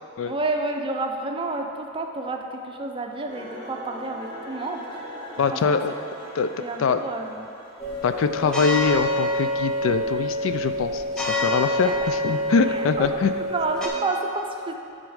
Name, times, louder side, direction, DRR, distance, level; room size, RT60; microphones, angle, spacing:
voice 1, 0.2-4.9 5.5-5.8 6.6-7.5 8.4-8.5 11.8-11.9 12.7-13.1 13.5-14.7, right 2 dB, 25° right, 3 dB, 0.5 m, -30 dB
sound 1, 3.3-8.3, equal, 25° left, 1.8 m, -41 dB
voice 2, 5.4-5.9 6.4-6.5 6.8-7.0 8.0-13.3, left 5 dB, 65° left, 9 dB, 0.3 m, -23 dB
sound 2, 7.8-13.9, left 1 dB, 5° left, 0.8 m, -26 dB
9.6 x 4.0 x 4.8 m, 2.7 s
head